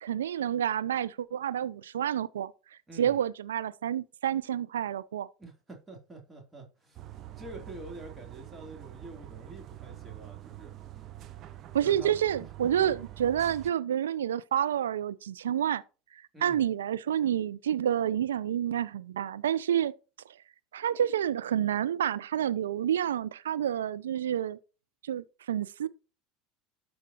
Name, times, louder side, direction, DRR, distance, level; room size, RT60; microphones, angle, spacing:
voice 1, 0.0-5.3 11.7-15.8 16.1-19.9 20.3-20.4 20.7-24.6 25.0-25.9, right 10 dB, 85° right, 0.3 m, -29 dB
voice 2, 2.9-3.2 5.4-11.1 11.8-12.9 16.3-16.6, right 2 dB, 20° right, 2.9 m, -47 dB
sound 1, 6.9-13.7, right 13 dB, 45° right, 0.9 m, -46 dB
13.0 x 4.7 x 2.8 m
hypercardioid pair, 80°, 0 cm